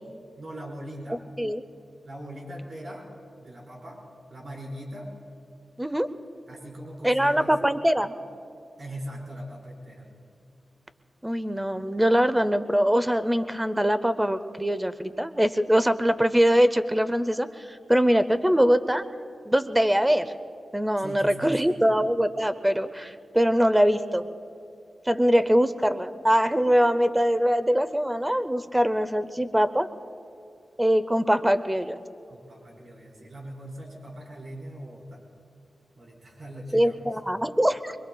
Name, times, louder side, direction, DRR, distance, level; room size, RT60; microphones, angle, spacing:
voice 1, 0.4-1.2 2.0-3.1 3.4-4.0 4.3-5.1 6.5-7.7 8.8-10.0 21.0-21.8 32.3-35.2 36.0-37.0, right 1 dB, 60° right, -4 dB, 4.6 m, -40 dB
voice 2, 1.1-1.6 5.8-6.1 7.0-8.1 11.2-19.0 19.5-20.3 20.7-24.3 25.1-29.9 30.8-32.0 36.7-38.0, equal, 10° right, 11 dB, 0.7 m, -23 dB
25.5 x 23.0 x 2.3 m, 2.6 s
cardioid pair, 75°, 0 cm